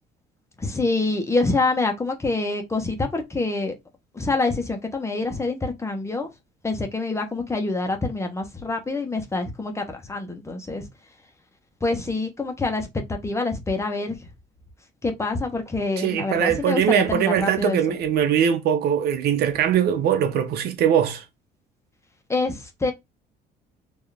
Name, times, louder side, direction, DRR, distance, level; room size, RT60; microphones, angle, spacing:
voice 1, 0.6-3.7 4.1-6.3 6.6-10.9 11.8-14.3 15.0-17.9 22.3-22.9, left 3 dB, 15° left, 1.3 m, -26 dB
voice 2, 16.0-21.2, right 9 dB, 70° right, 0.9 m, -21 dB
4.5 x 3.0 x 3.5 m
cardioid pair, 110°, 17 cm